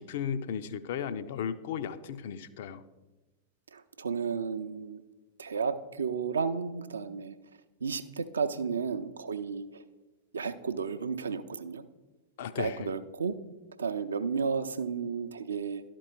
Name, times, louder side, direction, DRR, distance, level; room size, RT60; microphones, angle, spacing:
voice 1, 0.0-2.8 12.4-12.9, left 8 dB, 55° left, 12 dB, 0.4 m, -35 dB
voice 2, 3.7-5.0 5.4-7.4 7.8-9.8 10.3-11.8 12.6-13.3 13.8-15.8, right 5 dB, 70° right, 11 dB, 0.5 m, -33 dB
12.0 x 4.4 x 4.5 m, 1.1 s
figure-of-eight pair, 90°, 0 cm